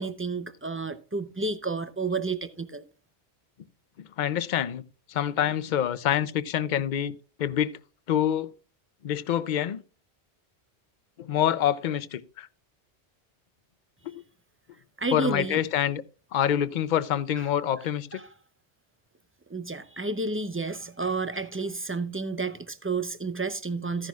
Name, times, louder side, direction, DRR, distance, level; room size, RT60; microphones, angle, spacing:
voice 1, 0.0-2.8 15.0-15.6 18.1-18.3 19.5-24.1, right 3 dB, 15° right, 0.5 m, -31 dB
voice 2, 4.0-4.8 5.1-7.8 8.1-8.5 9.0-9.8 11.2-12.5 14.0-14.2 15.1-16.0 16.3-18.2, left 10 dB, 50° left, 0.6 m, -26 dB
14.5 x 10.5 x 2.3 m
omnidirectional pair, 1.1 m